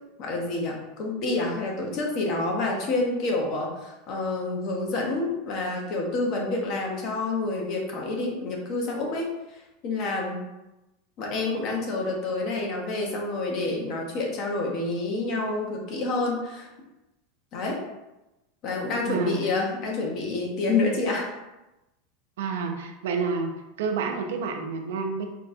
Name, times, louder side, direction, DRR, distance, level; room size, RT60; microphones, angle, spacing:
voice 1, 0.2-10.4 11.2-16.7 17.5-17.8 18.6-21.3, left 2 dB, 50° left, 0 dB, 1.1 m, -28 dB
voice 2, 19.1-19.4 22.4-23.5 23.8-25.3, right 5 dB, 80° right, 4 dB, 0.6 m, -29 dB
4.3 x 2.5 x 4.2 m, 0.98 s
supercardioid pair, 125°, 0 cm